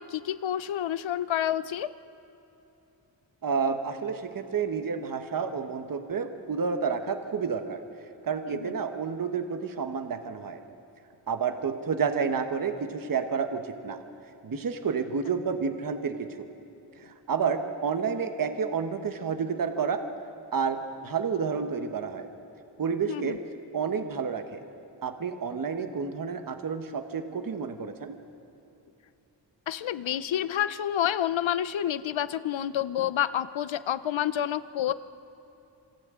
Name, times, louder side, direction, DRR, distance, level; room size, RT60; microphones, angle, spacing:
voice 1, 0.0-1.9 8.4-8.7 23.1-23.4 29.7-34.9, left 11 dB, 80° left, 15 dB, 0.7 m, -29 dB
voice 2, 3.4-7.8 8.2-10.6 11.3-14.0 14.4-16.3 17.3-20.0 20.5-22.3 22.8-23.4 23.7-24.6 25.0-28.2, right 6 dB, 45° right, 7 dB, 1.1 m, -30 dB
27.0 x 26.5 x 3.7 m, 3.0 s
wide cardioid pair, 145°, 46 cm